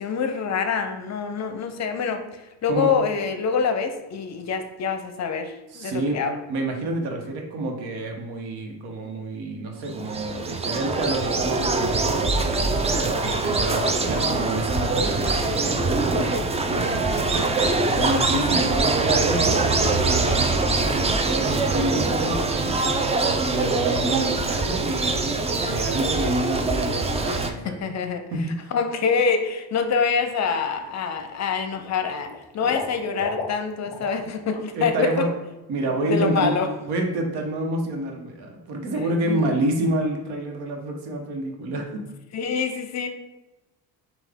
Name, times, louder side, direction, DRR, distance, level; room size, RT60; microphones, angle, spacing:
voice 1, 0.0-6.4 27.3-28.2 28.7-35.3 36.1-36.7 39.2-39.5 42.3-43.1, left 5 dB, 45° left, 7 dB, 0.6 m, -26 dB
voice 2, 5.7-6.2 6.5-27.7 28.3-28.6 34.7-35.3 35.7-36.6 36.8-42.0, right 2 dB, 80° right, 2 dB, 1.1 m, -28 dB
sound 1, 9.8-27.5, right 3 dB, 15° right, 0.3 m, -23 dB
Water / Liquid, 30.1-30.4 30.7-31.4 31.7-34.3 34.5-34.7 35.1-35.2, left 4 dB, 15° left, 0.8 m, -36 dB
5.6 x 2.4 x 3.5 m, 1.0 s
cardioid pair, 100°, 39 cm